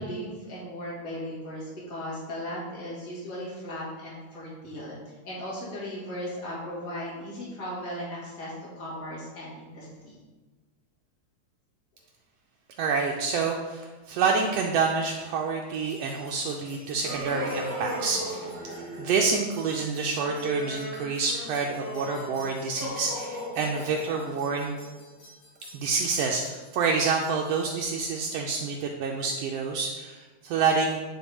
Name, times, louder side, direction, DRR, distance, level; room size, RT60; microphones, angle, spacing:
voice 1, 0.0-5.0 5.2-10.2, equal, 30° left, -6 dB, 2.1 m, -37 dB
voice 2, 12.8-18.5 19.0-24.8 25.7-31.0, right 4 dB, 80° right, 1 dB, 1.4 m, -28 dB
sound 1, 15.9-27.8, left 1 dB, 70° left, 2.4 m, -40 dB
sound 2, 17.0-19.2, right 2 dB, 60° right, 1.3 m, -37 dB
9.4 x 3.9 x 3.5 m, 1.2 s
omnidirectional pair, 3.3 m